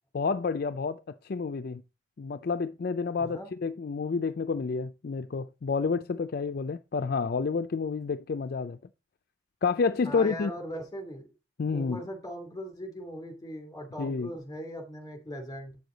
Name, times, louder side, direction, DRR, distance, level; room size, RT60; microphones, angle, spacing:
voice 1, 0.1-1.8 2.2-8.8 9.6-10.5 11.6-12.0 14.0-14.3, left 4 dB, 50° left, 0.4 m, -29 dB
voice 2, 3.2-3.5 10.0-11.3 11.7-15.7, equal, 20° left, 2.7 m, -39 dB
8.5 x 6.5 x 3.9 m
head